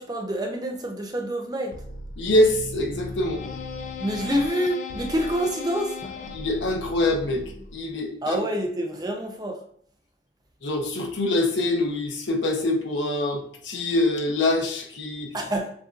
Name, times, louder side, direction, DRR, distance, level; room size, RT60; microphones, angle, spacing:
voice 1, 0.0-1.8 4.0-6.0 8.2-9.6 15.3-15.7, equal, 20° right, 1 dB, 0.6 m, -27 dB
sound 1, 1.7-8.0, left 4 dB, 40° left, 0.4 m, -37 dB
voice 2, 2.2-3.4 6.3-7.4 7.7-8.4 10.6-15.3, left 1 dB, 85° left, 1 dB, 0.9 m, -24 dB
7.1 x 2.6 x 2.5 m, 0.62 s
head